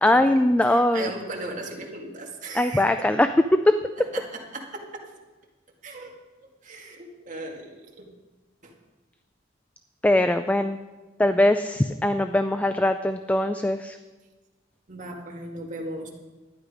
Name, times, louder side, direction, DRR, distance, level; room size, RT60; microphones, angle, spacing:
voice 1, 0.0-1.1 2.5-3.8 10.0-10.8 11.2-14.0, left 1 dB, 10° left, 9 dB, 0.3 m, -21 dB
voice 2, 0.6-3.1 4.1-5.0 5.8-6.1 6.4-8.1 8.6-8.7 14.9-16.1, right 2 dB, 40° right, -1 dB, 2.1 m, -37 dB
12.0 x 10.0 x 5.1 m, 1.2 s
head